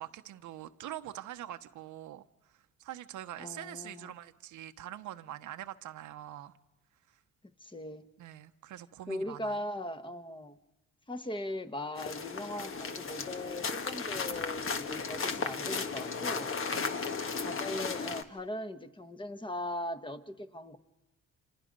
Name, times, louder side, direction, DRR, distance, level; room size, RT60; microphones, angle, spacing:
voice 1, 0.0-6.5 8.2-9.6 16.7-17.0, right 13 dB, 75° right, 9 dB, 1.0 m, -44 dB
voice 2, 3.4-4.1 7.6-8.1 9.1-10.6 11.1-17.2 17.4-20.8, left 1 dB, 15° left, 9 dB, 1.3 m, -39 dB
sound 1, 12.0-18.2, left 5 dB, 45° left, 1.4 m, -35 dB
29.0 x 27.0 x 5.4 m, 0.99 s
cardioid pair, 90°, 30 cm